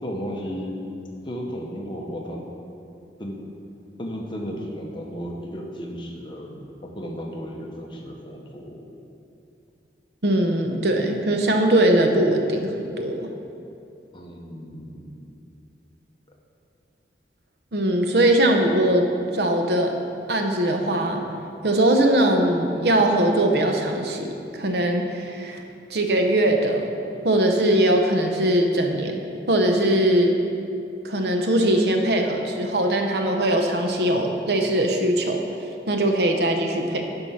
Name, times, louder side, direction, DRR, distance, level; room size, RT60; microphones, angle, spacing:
voice 1, 0.0-0.8 1.2-2.5 3.2-3.4 4.0-8.9 14.1-15.3, equal, 25° left, -1 dB, 1.1 m, -34 dB
voice 2, 10.2-13.3 17.7-19.1 19.3-19.9 20.3-21.2 21.6-25.6 25.9-26.9 27.2-29.2 29.5-30.3 31.0-35.4 35.9-37.0, right 1 dB, 65° right, 4 dB, 0.8 m, -21 dB
11.0 x 4.8 x 5.7 m, 2.6 s
head